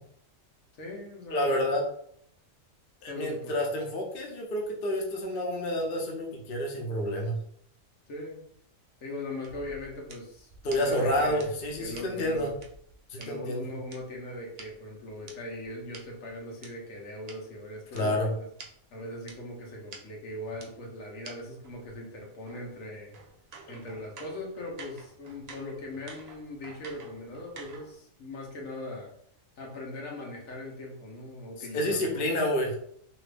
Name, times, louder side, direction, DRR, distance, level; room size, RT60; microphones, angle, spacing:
voice 1, 0.7-1.6 3.1-3.5 8.1-8.4 9.0-11.5 11.8-12.5 13.2-18.4 18.9-23.1 23.7-29.1 29.6-32.3, left 1 dB, 80° left, -1 dB, 1.3 m, -40 dB
voice 2, 1.3-1.8 3.0-7.4 10.6-12.5 13.1-13.8 17.9-18.3 31.7-32.7, left 1 dB, 50° left, 0 dB, 0.8 m, -29 dB
sound 1, 9.4-13.3 13.9-16.7 17.3-17.4 17.9-18.0 18.3-18.4 18.6-18.7 19.3-19.4 19.9-20.0 20.6-20.7 21.2-21.3 21.6-28.0, right 4 dB, 85° right, 0.3 m, -49 dB
3.0 x 2.4 x 3.3 m, 0.67 s
omnidirectional pair, 1.4 m